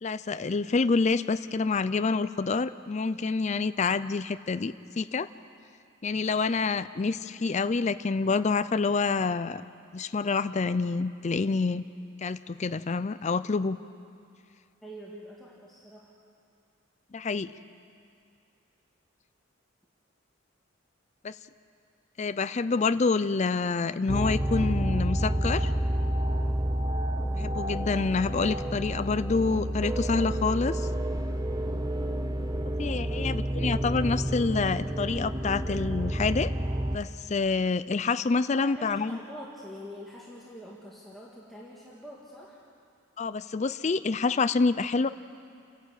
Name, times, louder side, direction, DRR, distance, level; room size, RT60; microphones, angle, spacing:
voice 1, 0.0-5.3 6.0-9.6 9.9-11.8 12.2-13.8 17.1-17.5 21.2-21.4 22.2-25.7 27.3-30.9 32.8-36.5 36.9-39.2 43.2-45.1, left 4 dB, 35° left, 13 dB, 0.4 m, -27 dB
voice 2, 14.8-16.1 38.4-42.6, equal, ahead, -6 dB, 1.9 m, -45 dB
sound 1, 24.1-37.0, right 1 dB, 20° right, 0.8 m, -29 dB
29.0 x 11.5 x 8.3 m, 2.4 s
head